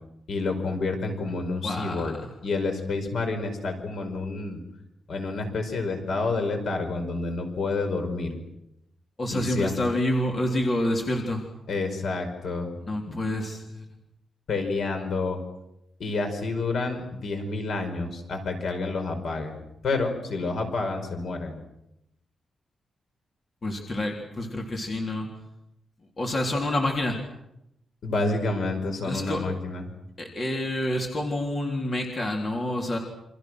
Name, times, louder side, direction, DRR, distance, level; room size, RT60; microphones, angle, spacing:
voice 1, 0.3-2.1 2.4-4.6 5.1-8.4 9.3-9.8 11.7-12.7 13.1-13.2 14.5-15.4 16.0-19.6 19.8-21.6 28.0-29.9, left 3 dB, 60° left, 5 dB, 5.3 m, -29 dB
voice 2, 1.6-2.3 9.2-11.4 12.9-13.8 23.6-25.3 26.2-27.2 29.0-29.4 30.2-33.0, left 1 dB, 30° left, 1 dB, 3.6 m, -28 dB
29.0 x 26.0 x 6.3 m, 0.83 s
wide cardioid pair, 170°, 0 cm